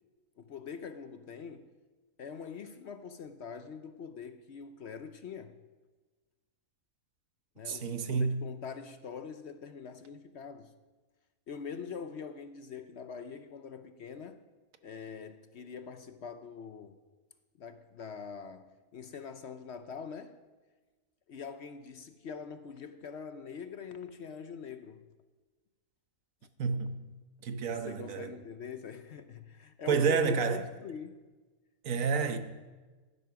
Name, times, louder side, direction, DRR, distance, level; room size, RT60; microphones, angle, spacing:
voice 1, 0.4-1.7 2.2-5.6 7.6-10.7 11.5-14.4 14.8-17.0 17.6-20.4 21.3-25.0 27.8-31.2, left 6 dB, 60° left, 0.8 m, -44 dB
voice 2, 7.7-8.4 26.6-27.0 27.4-28.3 29.9-30.6 31.8-32.4, right 5 dB, 70° right, 1.3 m, -29 dB
15.0 x 11.5 x 5.8 m
omnidirectional pair, 1.5 m